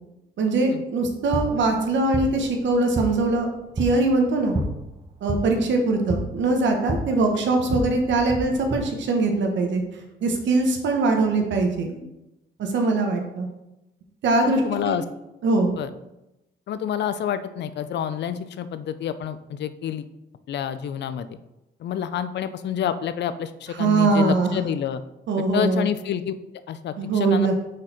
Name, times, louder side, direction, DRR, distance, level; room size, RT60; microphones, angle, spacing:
voice 1, 0.4-4.6 5.2-9.8 10.2-12.1 12.6-13.5 14.2-15.0 15.4-15.7 23.8-24.6 25.3-25.9 27.0-27.5, right 3 dB, 70° right, 3 dB, 1.1 m, -22 dB
sound 1, 1.0-8.8, right 1 dB, 30° right, 1.1 m, -31 dB
voice 2, 14.4-15.0 15.8-15.9 16.7-20.0 20.5-21.4 21.8-25.0 25.5-26.3 26.7-27.5, left 9 dB, 60° left, 13 dB, 0.5 m, -28 dB
6.4 x 4.1 x 4.3 m, 0.93 s
cardioid pair, 90°, 20 cm